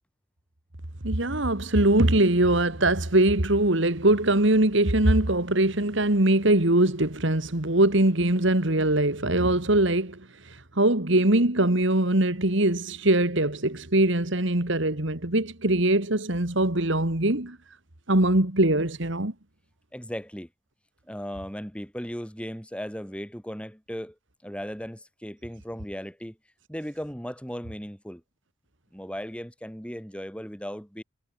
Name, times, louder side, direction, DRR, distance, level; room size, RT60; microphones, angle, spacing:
voice 1, 1.0-17.6 18.1-19.3, right 1 dB, 60° right, 2.3 m, -22 dB
voice 2, 19.9-20.5 21.1-26.4 26.7-28.2 28.9-31.0, equal, 5° left, 7.9 m, -37 dB
head